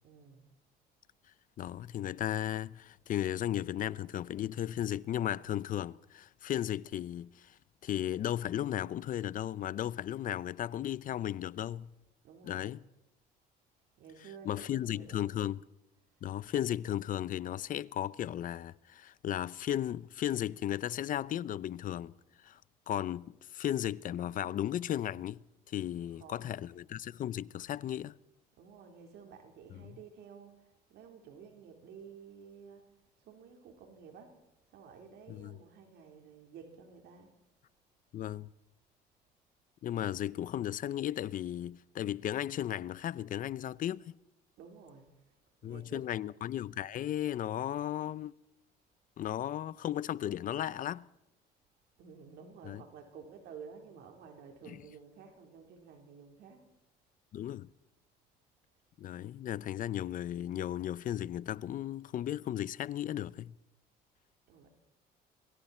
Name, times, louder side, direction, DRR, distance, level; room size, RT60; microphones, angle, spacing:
voice 1, 0.0-0.5 12.2-12.8 14.0-15.2 26.2-26.5 28.6-30.6 30.9-32.9 33.2-34.4 34.7-37.3 44.6-45.1 45.6-46.0 52.0-56.7 64.5-64.7, right 6 dB, 80° right, 4.1 m, -52 dB
voice 2, 1.6-11.9 12.4-12.8 14.4-15.6 16.2-22.1 22.4-22.6 22.9-28.2 29.7-30.0 35.3-35.6 38.1-38.5 39.8-44.1 45.6-48.3 49.2-51.1 52.6-52.8 54.7-54.8 57.3-57.7 59.0-63.5, left 11 dB, 50° left, 0.6 m, -35 dB
27.5 x 23.0 x 4.4 m
cardioid pair, 110°, 17 cm